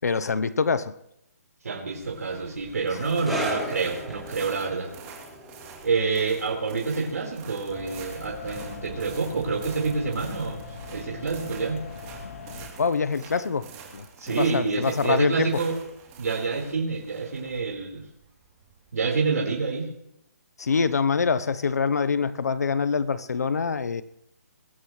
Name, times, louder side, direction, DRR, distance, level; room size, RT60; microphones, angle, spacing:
voice 1, 0.0-0.9 12.8-15.5 20.6-24.0, left 5 dB, 85° left, 0.9 m, -25 dB
voice 2, 1.6-4.9 5.8-10.6 10.9-11.8 14.2-15.8 16.2-18.0 18.9-19.9, right 4 dB, 75° right, 4.4 m, -27 dB
sound 1, 2.0-18.9, right 6 dB, 20° right, 3.2 m, -47 dB
sound 2, 3.2-10.2 10.4-10.7 11.4-11.5, right 1 dB, ahead, 3.5 m, -37 dB
sound 3, 7.7-12.7, left 4 dB, 60° left, 2.9 m, -40 dB
21.5 x 17.5 x 3.2 m
hypercardioid pair, 165°, 8 cm